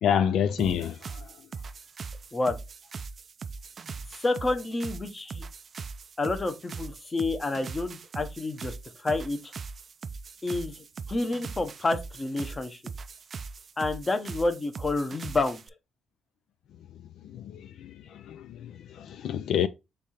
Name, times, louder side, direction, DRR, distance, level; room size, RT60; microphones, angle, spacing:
voice 1, 0.0-1.2 17.2-19.7, left 8 dB, 75° left, 0.4 m, -28 dB
sound 1, 0.6-15.7, right 5 dB, 45° right, 0.3 m, -41 dB
voice 2, 4.2-5.4 6.2-8.7 9.0-9.5 10.4-12.8 13.8-15.6, left 2 dB, 25° left, 0.9 m, -29 dB
3.6 x 3.4 x 4.2 m
cardioid pair, 90°, 0 cm